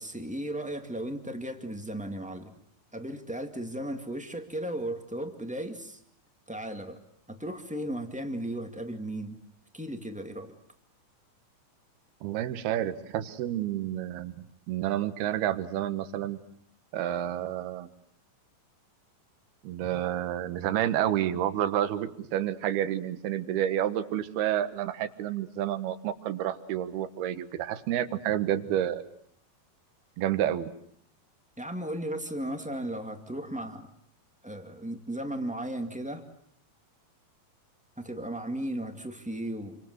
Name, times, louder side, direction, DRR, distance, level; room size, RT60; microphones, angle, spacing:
voice 1, 0.0-2.6 2.9-6.0 6.5-7.0 7.3-9.4 9.7-10.5 31.6-33.9 34.4-36.3 38.0-39.8, right 1 dB, 5° right, 5 dB, 0.8 m, -35 dB
voice 2, 12.2-14.3 14.7-16.4 16.9-17.9 19.6-29.0 30.2-30.7, right 11 dB, 90° right, 11 dB, 3.3 m, -29 dB
28.5 x 25.0 x 8.0 m, 0.65 s
omnidirectional pair, 4.3 m